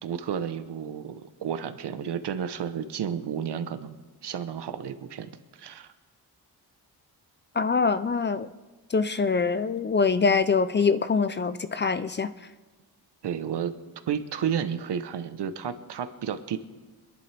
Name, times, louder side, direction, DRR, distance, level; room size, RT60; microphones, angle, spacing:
voice 1, 0.0-5.9 13.2-13.8 14.1-16.6, right 8 dB, 85° right, 10 dB, 1.0 m, -32 dB
voice 2, 7.6-8.5 8.9-12.3, left 5 dB, 30° left, 13 dB, 0.4 m, -24 dB
25.5 x 11.0 x 3.4 m, 1.3 s
wide cardioid pair, 150°, 40 cm